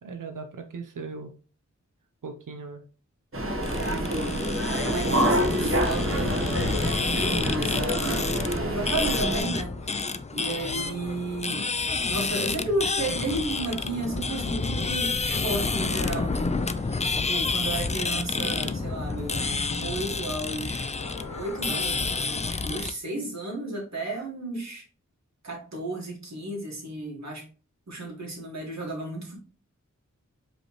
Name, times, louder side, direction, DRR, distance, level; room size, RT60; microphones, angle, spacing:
voice 1, 0.0-1.3 2.2-2.8 10.7-11.0, right 4 dB, 90° right, 6 dB, 0.7 m, -39 dB
sound 1, 3.3-9.4, right 1 dB, 45° right, 1.1 m, -27 dB
sound 2, 3.6-22.9, left 4 dB, 25° left, 0.3 m, -29 dB
voice 2, 3.7-6.4 6.9-10.0 10.3-11.7 12.1-17.0 17.3-20.9 21.4-24.9 25.4-27.5 27.9-29.4, right 2 dB, 60° right, -1 dB, 1.8 m, -33 dB
sound 3, 9.0-12.7 13.0-15.0 15.5-22.6, left 2 dB, 80° left, 1.1 m, -45 dB
5.1 x 3.3 x 3.0 m, 0.36 s
wide cardioid pair, 50°, 31 cm